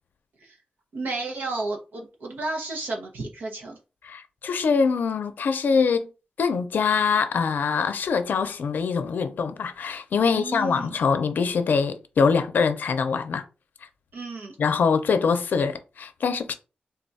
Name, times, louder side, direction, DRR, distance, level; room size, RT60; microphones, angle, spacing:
voice 1, 0.9-3.8 10.2-10.9 14.1-14.6, right 3 dB, 90° right, 0.8 m, -32 dB
voice 2, 4.0-6.1 6.4-13.4 14.6-16.5, left 5 dB, 80° left, 0.5 m, -24 dB
3.7 x 2.3 x 4.0 m
wide cardioid pair, 120°, 3 cm